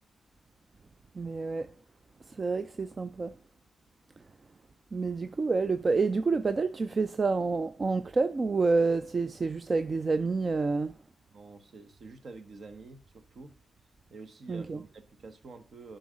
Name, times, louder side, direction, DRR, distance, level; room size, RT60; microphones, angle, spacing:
voice 1, 1.1-1.8 2.2-3.4 4.2-4.4 4.9-11.0 14.5-14.8, right 4 dB, 35° right, 0.4 m, -28 dB
voice 2, 11.3-13.5 14.1-16.0, right 3 dB, 55° right, 1.0 m, -48 dB
11.0 x 3.9 x 5.0 m
cardioid pair, 95°, 0 cm